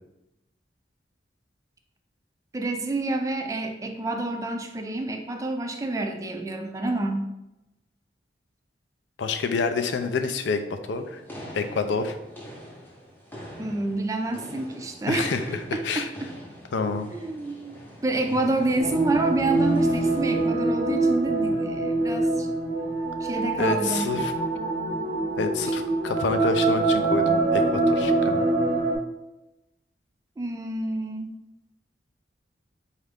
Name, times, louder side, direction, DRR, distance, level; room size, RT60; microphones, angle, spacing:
voice 1, 2.5-7.3 13.6-15.4 15.7-16.3 16.9-17.8 18.0-22.5 23.2-24.1 30.4-31.3, right 2 dB, 20° right, 5 dB, 0.3 m, -28 dB
voice 2, 9.2-11.2 11.5-12.1 15.1-15.6 15.8-16.1 16.7-17.1 23.6-24.3 25.4-28.4, left 4 dB, 80° left, 7 dB, 0.4 m, -28 dB
sound 1, 10.9-20.5, equal, 10° left, 0.7 m, -43 dB
sound 2, 18.8-29.0, right 2 dB, 55° right, 0.6 m, -24 dB
4.2 x 2.4 x 3.4 m, 0.91 s
head